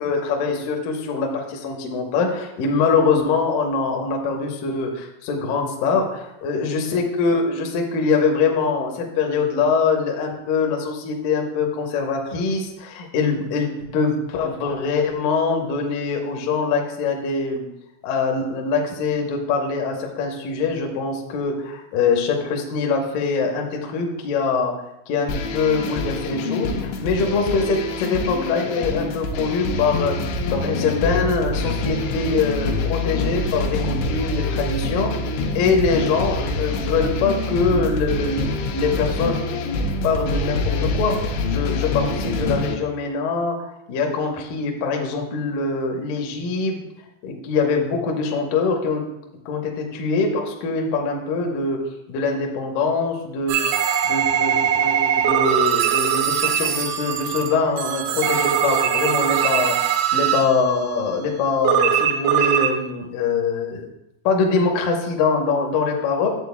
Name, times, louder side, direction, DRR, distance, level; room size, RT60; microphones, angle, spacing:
voice 1, 0.0-17.7 18.0-24.7 25.1-30.2 30.5-35.2 35.6-39.4 40.0-41.2 41.5-46.8 47.2-49.0 49.5-51.8 52.1-59.8 60.1-63.9 64.2-66.3, left 4 dB, 75° left, 1 dB, 2.2 m, -23 dB
sound 1, 25.3-42.8, left 2 dB, 90° left, 3.2 m, -25 dB
sound 2, 53.5-60.7 61.6-62.8, right 9 dB, 80° right, 2.3 m, -21 dB
11.0 x 7.5 x 2.3 m, 0.84 s
omnidirectional pair, 5.1 m